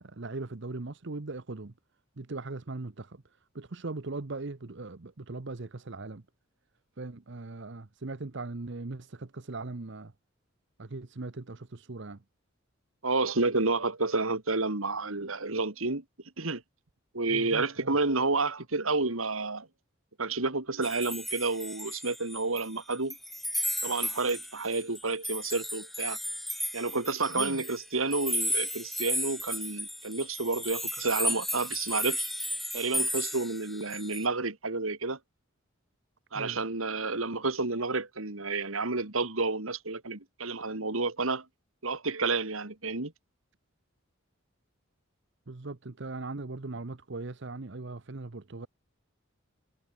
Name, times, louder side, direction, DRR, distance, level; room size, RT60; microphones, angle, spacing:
voice 1, 0.0-1.7 2.2-3.2 3.5-6.2 7.0-10.1 10.8-12.2 17.3-18.0 27.3-27.6 36.3-36.6 45.5-48.7, right 3 dB, 60° right, 0.9 m, -39 dB
voice 2, 13.0-16.0 16.4-16.6 17.1-19.7 20.2-23.2 23.8-26.2 26.7-32.3 32.7-35.2 36.3-41.4 41.8-43.1, right 3 dB, 85° right, 2.7 m, -30 dB
sound 1, 20.8-22.7 22.9-34.3, equal, ahead, 0.5 m, -34 dB
head